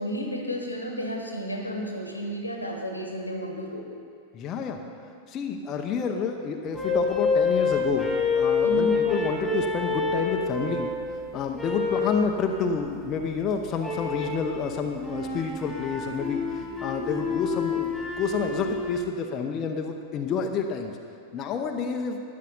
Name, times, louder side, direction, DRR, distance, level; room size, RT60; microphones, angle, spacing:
voice 1, 0.0-3.9 8.6-9.0, equal, 85° left, 2 dB, 1.3 m, -32 dB
voice 2, 4.3-4.8 5.3-10.9 11.3-20.9 21.3-22.2, left 5 dB, 30° left, 3 dB, 0.7 m, -29 dB
sound 1, 6.7-11.0 11.5-12.2 13.8-14.4 15.0-19.0, left 4 dB, 5° left, 2.3 m, -27 dB
12.5 x 9.5 x 4.0 m, 2.4 s
figure-of-eight pair, 90°, 0 cm